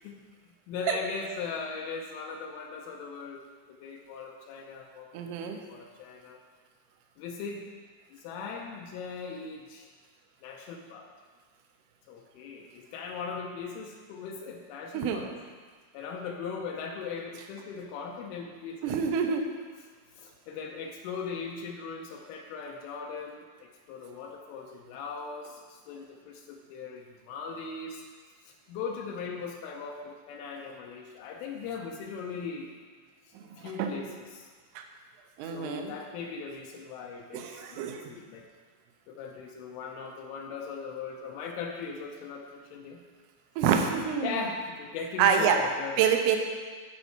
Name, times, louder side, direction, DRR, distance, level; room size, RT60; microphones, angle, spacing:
voice 1, 0.7-3.4 3.7-6.4 7.2-7.7 8.1-9.9 10.4-11.1 12.1-15.3 15.9-19.3 20.2-28.0 28.5-32.7 33.6-34.5 35.4-38.5 39.1-43.0 44.2-46.2, left 5 dB, 80° left, 1 dB, 3.2 m, -39 dB
voice 2, 5.1-5.6 14.9-15.2 18.8-19.4 33.8-33.9 35.4-35.9 37.3-38.1 43.6-44.3 45.2-45.6 46.0-46.4, right 7 dB, 85° right, 4 dB, 2.3 m, -26 dB
15.0 x 5.5 x 4.5 m, 1.5 s
omnidirectional pair, 5.8 m